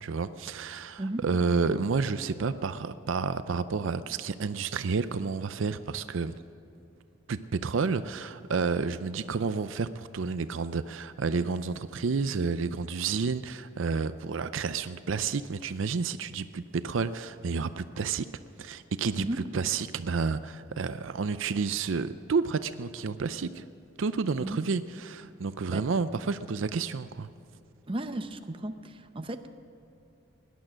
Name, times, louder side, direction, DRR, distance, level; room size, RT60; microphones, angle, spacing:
voice 1, 0.0-6.3 7.3-18.3 18.6-23.6 24.0-27.3, right 4 dB, 70° right, 13 dB, 0.5 m, -30 dB
voice 2, 27.9-29.5, right 1 dB, 25° right, 8 dB, 0.7 m, -34 dB
18.0 x 11.5 x 6.3 m, 2.8 s
head